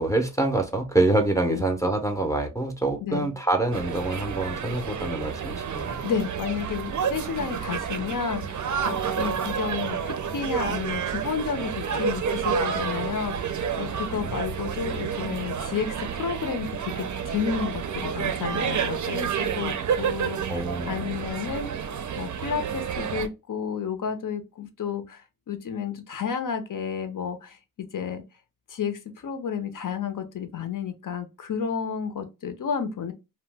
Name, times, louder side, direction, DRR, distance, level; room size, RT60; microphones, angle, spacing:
voice 1, 0.0-6.0 9.2-9.3 14.1-14.4 20.5-21.2, right 2 dB, 10° left, 0.5 m, -26 dB
voice 2, 3.0-3.3 5.1-5.2 6.0-28.2 28.7-33.1, left 7 dB, 65° left, 0.6 m, -31 dB
sound 1, 3.7-23.3, right 7 dB, 55° right, 0.4 m, -30 dB
2.8 x 2.1 x 3.2 m
wide cardioid pair, 100°, 35 cm